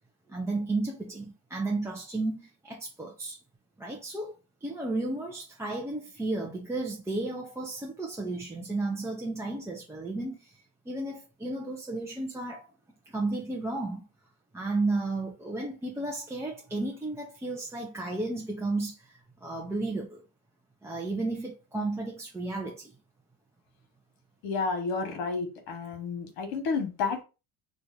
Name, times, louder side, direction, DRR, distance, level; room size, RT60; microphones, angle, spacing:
voice 1, 0.3-3.4 3.8-4.3 4.6-12.7 13.1-14.0 14.5-20.2 20.8-22.9, right 2 dB, 5° right, 0.4 m, -33 dB
voice 2, 24.4-27.2, left 4 dB, 85° left, 1.3 m, -31 dB
2.8 x 2.4 x 3.7 m
cardioid pair, 115°, 45 cm